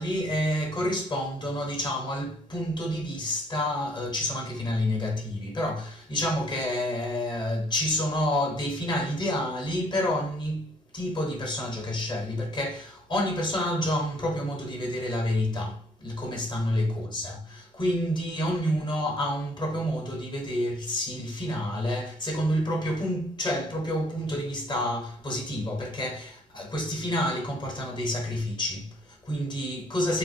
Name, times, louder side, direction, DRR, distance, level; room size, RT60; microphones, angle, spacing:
voice 1, 0.0-30.2, left 1 dB, 20° left, 1.0 m, -29 dB
3.7 x 2.5 x 2.6 m
cardioid pair, 100°, 20 cm